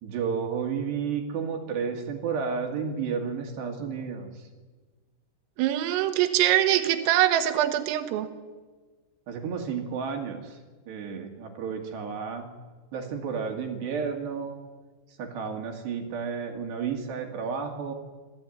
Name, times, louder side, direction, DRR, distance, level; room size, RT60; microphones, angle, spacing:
voice 1, 0.0-4.5 9.3-10.6 10.9-12.5 12.9-14.6 15.2-17.9, right 6 dB, 60° right, 3 dB, 3.9 m, -32 dB
voice 2, 5.6-8.3, right 12 dB, 85° right, 7 dB, 3.9 m, -23 dB
26.5 x 16.5 x 9.4 m, 1.4 s
omnidirectional pair, 6.0 m